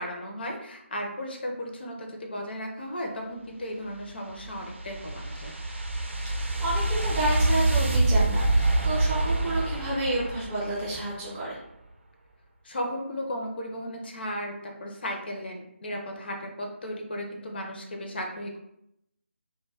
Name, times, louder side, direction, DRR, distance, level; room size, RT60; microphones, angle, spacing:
voice 1, 0.0-5.5 12.6-18.6, equal, 50° left, 1 dB, 0.5 m, -35 dB
sound 1, 3.9-11.2, right 2 dB, 60° right, 0.5 m, -26 dB
voice 2, 6.6-11.6, right 1 dB, 10° right, -8 dB, 0.5 m, -30 dB
2.2 x 2.1 x 3.3 m, 0.79 s
figure-of-eight pair, 155°, 7 cm